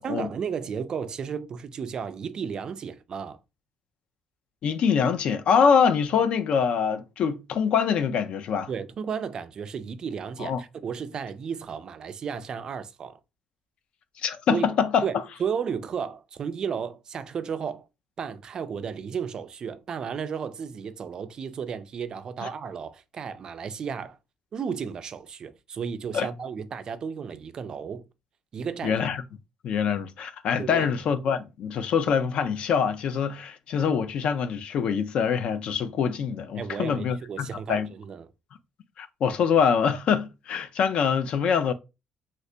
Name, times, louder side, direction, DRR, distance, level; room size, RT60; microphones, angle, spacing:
voice 1, 0.0-3.4 8.7-13.2 14.5-14.6 15.0-17.9 18.2-24.2 24.5-28.1 28.5-29.0 30.6-30.9 36.6-38.3, right 6 dB, 35° right, 0.3 m, -33 dB
voice 2, 4.6-8.7 10.4-10.6 14.2-15.0 22.4-22.5 26.1-26.3 28.8-29.2 29.6-37.9 39.0-41.7, left 6 dB, 50° left, 0.4 m, -24 dB
2.8 x 2.6 x 3.2 m
cardioid pair, 170°, 2 cm